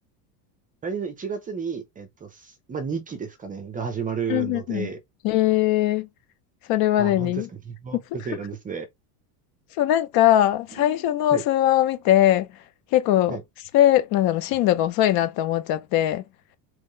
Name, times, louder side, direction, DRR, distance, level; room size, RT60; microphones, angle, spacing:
voice 1, 0.8-5.0 7.0-8.9 10.8-11.4 13.3-13.4, right 6 dB, 15° right, 0.6 m, -32 dB
voice 2, 4.3-4.9 5.2-6.1 6.7-7.5 7.9-8.0 9.8-12.5 12.9-13.4 13.7-16.2, left 13 dB, 50° left, 0.8 m, -20 dB
3.7 x 3.2 x 3.2 m
supercardioid pair, 145°, 49 cm